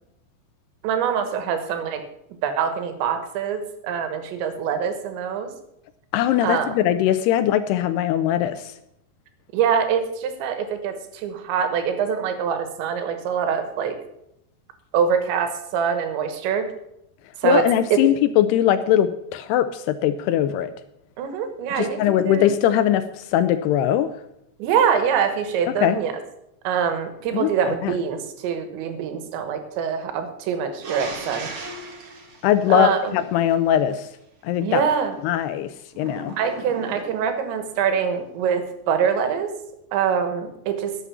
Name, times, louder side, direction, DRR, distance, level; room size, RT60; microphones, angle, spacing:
voice 1, 0.8-2.0 2.4-5.5 6.4-6.8 9.5-14.0 14.9-16.7 17.4-17.6 17.9-18.0 21.2-22.5 24.6-26.1 26.7-31.5 32.7-33.2 34.6-35.2 36.4-39.5 39.9-41.0, right 7 dB, 90° right, 8 dB, 3.6 m, -24 dB
voice 2, 6.1-8.7 17.4-20.7 21.8-24.1 25.8-26.0 27.3-27.9 32.4-34.1 34.4-34.9 35.2-35.7 36.0-36.3, left 11 dB, 85° left, 12 dB, 2.4 m, -21 dB
sound 1, 30.8-33.5 35.9-37.4, right 3 dB, 60° right, 1.3 m, -37 dB
12.0 x 7.4 x 6.9 m, 0.81 s
omnidirectional pair, 5.0 m